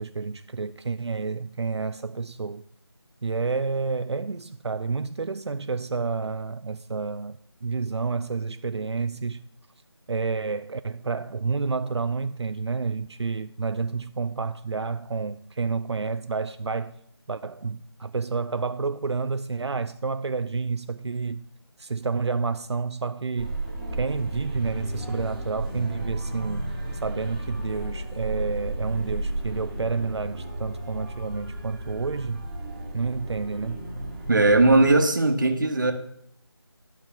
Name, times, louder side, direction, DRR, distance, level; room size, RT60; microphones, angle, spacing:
voice 1, 0.0-2.6 3.2-9.5 10.1-17.0 17.3-21.5 21.8-23.6 23.9-32.5 32.9-33.9, right 4 dB, 85° right, 0.4 m, -29 dB
sound 1, 23.4-35.0, right 1 dB, 5° right, 1.3 m, -33 dB
voice 2, 34.3-35.9, right 2 dB, 45° right, 1.1 m, -19 dB
10.5 x 4.8 x 5.9 m
figure-of-eight pair, 165°, 14 cm